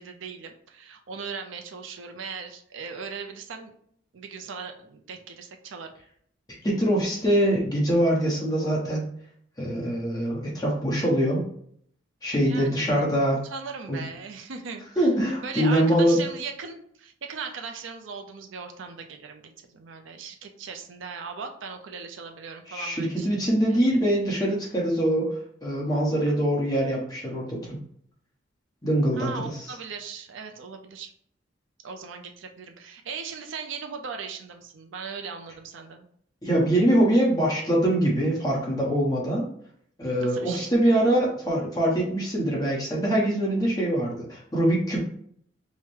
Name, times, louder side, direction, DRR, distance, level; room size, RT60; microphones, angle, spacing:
voice 1, 0.0-3.7 4.1-5.9 12.4-15.1 15.4-23.8 26.2-26.4 29.2-31.1 31.8-36.1 40.2-40.7, right 5 dB, 80° right, 5 dB, 0.5 m, -38 dB
voice 2, 6.6-9.1 9.6-11.4 12.2-13.4 13.9-14.0 15.0-16.2 22.7-27.8 28.8-29.5 36.4-39.5 40.0-45.0, right 1 dB, 20° left, -4 dB, 1.0 m, -23 dB
4.8 x 2.1 x 3.2 m, 0.64 s
head